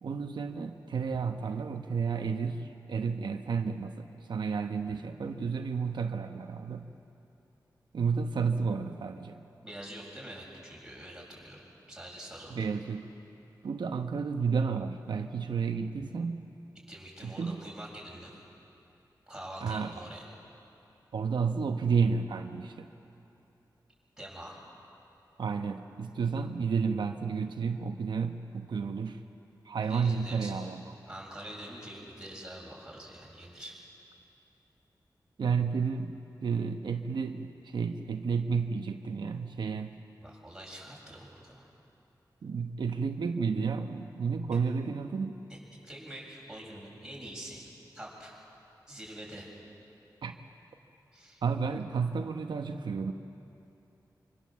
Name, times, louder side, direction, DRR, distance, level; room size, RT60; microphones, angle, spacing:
voice 1, 0.0-6.9 7.9-9.4 12.5-13.0 13.6-16.4 17.2-17.6 19.6-19.9 21.1-22.9 25.4-29.2 29.6-30.8 35.4-40.0 42.4-45.3 50.2-50.4 51.4-53.1, right 5 dB, 90° right, 5 dB, 1.0 m, -31 dB
voice 2, 9.6-11.6 11.9-12.7 16.9-18.3 19.3-20.2 24.2-24.6 29.8-30.7 31.1-33.7 40.2-41.7 45.5-45.6 45.8-47.7 47.9-48.3 48.9-49.5 51.1-51.4, right 1 dB, 10° right, -3 dB, 7.2 m, -45 dB
26.0 x 25.0 x 7.4 m, 2.8 s
wide cardioid pair, 90°, 8 cm